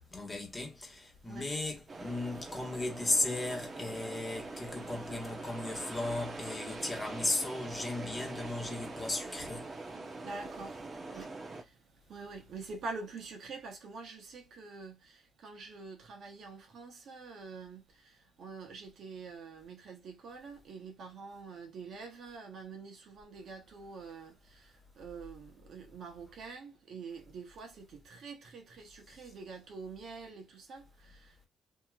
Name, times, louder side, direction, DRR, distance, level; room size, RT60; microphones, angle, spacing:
voice 1, 0.1-9.7, left 2 dB, 20° left, 1.3 m, -36 dB
sound 1, 1.9-11.6, right 3 dB, 35° right, 0.9 m, -43 dB
voice 2, 10.2-31.5, right 4 dB, 65° right, 1.1 m, -46 dB
2.9 x 2.8 x 2.4 m
cardioid pair, 90°, 0 cm